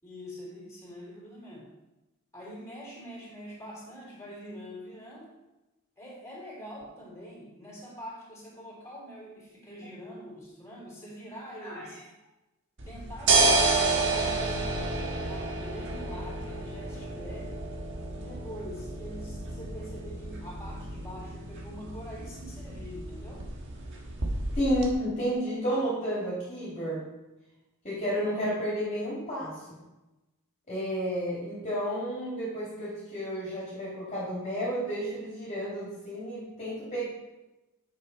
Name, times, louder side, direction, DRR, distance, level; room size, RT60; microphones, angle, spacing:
voice 1, 0.0-1.7 2.3-5.3 6.0-12.0 12.9-17.6 18.1-23.4, equal, 15° left, -6 dB, 3.7 m, -44 dB
sound 1, 12.8-24.9, right 3 dB, 55° right, 1.5 m, -30 dB
voice 2, 24.6-27.0 27.8-29.6 30.7-37.0, equal, 30° left, -8 dB, 2.9 m, -31 dB
9.7 x 6.8 x 4.3 m, 1.0 s
head